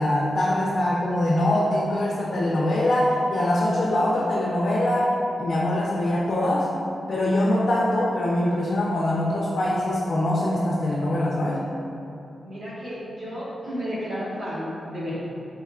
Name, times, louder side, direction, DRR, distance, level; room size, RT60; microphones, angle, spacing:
voice 1, 0.0-5.1 5.4-6.7 7.1-11.6, left 1 dB, 50° left, -5 dB, 0.4 m, -23 dB
voice 2, 12.4-15.2, equal, 45° right, -8 dB, 0.9 m, -32 dB
4.1 x 2.9 x 2.4 m, 2.7 s
wide cardioid pair, 160°, 0 cm